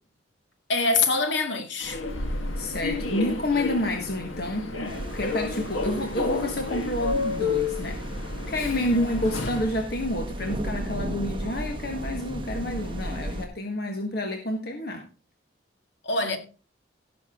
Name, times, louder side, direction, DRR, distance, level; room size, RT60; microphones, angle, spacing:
voice 1, 0.7-2.0 16.0-16.4, left 3 dB, 65° left, 2.0 m, -24 dB
Human voice / Subway metro underground, 1.8-9.8, left 3 dB, 85° left, 1.9 m, -31 dB
voice 2, 2.6-8.0 8.5-15.1, left 1 dB, 50° left, 1.5 m, -29 dB
sound 1, 4.9-13.5, right 1 dB, 25° right, 1.6 m, -35 dB
17.0 x 6.9 x 3.8 m
head